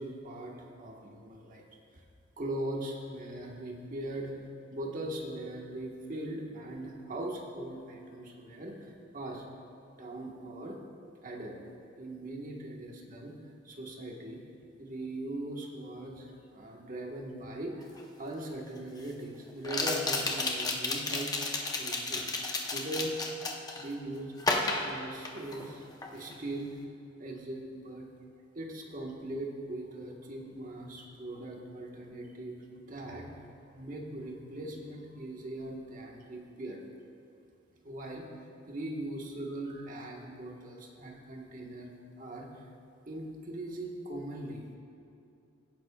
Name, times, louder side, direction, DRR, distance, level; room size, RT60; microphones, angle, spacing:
voice 1, 0.0-1.6 1.9-2.0 2.4-4.3 4.7-9.4 9.9-10.8 11.2-13.4 13.6-14.4 14.8-21.3 21.7-22.4 22.7-23.1 23.7-24.5 24.8-26.8 27.2-28.1 28.5-36.8 37.8-38.2 38.6-41.9 42.2-42.7 43.1-44.6, right 1 dB, 40° right, -1 dB, 1.4 m, -40 dB
sound 1, 18.0-18.1 19.6-23.9 24.4-25.7 26.0-26.4, left 3 dB, 20° left, 0.8 m, -32 dB
17.0 x 10.0 x 2.4 m, 2.7 s
head